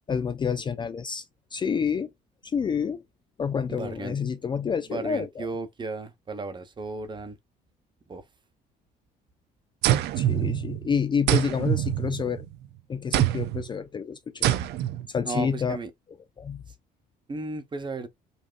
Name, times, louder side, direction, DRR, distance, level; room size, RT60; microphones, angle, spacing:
voice 1, 0.1-1.3 1.5-2.1 2.4-3.0 3.4-5.5 10.2-12.4 12.9-14.5 15.1-15.8 16.4-16.6, left 6 dB, 25° left, 0.4 m, -28 dB
voice 2, 3.7-4.2 4.9-7.4 8.1-8.2 15.2-15.9 17.3-18.1, right 3 dB, 25° right, 0.9 m, -34 dB
sound 1, 9.8-10.9 11.3-12.6 13.1-13.7 14.4-15.1, right 12 dB, 80° right, 0.5 m, -25 dB
5.2 x 2.8 x 2.4 m
cardioid pair, 110°, 17 cm